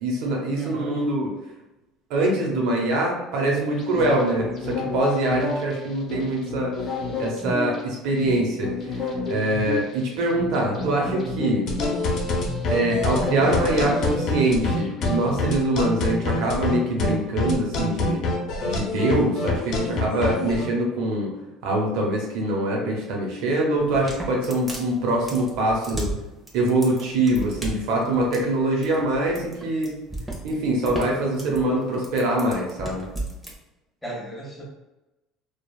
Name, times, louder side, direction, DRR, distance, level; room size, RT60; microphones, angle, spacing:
voice 1, 0.0-1.3 2.1-6.7 7.2-11.7 12.7-18.2 18.6-21.3 21.6-26.1 26.5-29.9 30.4-33.0, right 1 dB, 70° right, -1 dB, 0.8 m, -24 dB
voice 2, 0.6-1.0 31.3-31.6 34.0-34.6, right 3 dB, 10° left, -4 dB, 1.1 m, -36 dB
sound 1, 3.7-15.4, left 3 dB, 40° left, 0.9 m, -31 dB
sound 2, 11.7-20.7, left 2 dB, 60° left, 0.6 m, -25 dB
sound 3, 23.8-33.5, right 1 dB, 10° right, 0.8 m, -34 dB
3.0 x 2.3 x 2.3 m, 1.0 s
supercardioid pair, 80°, 0 cm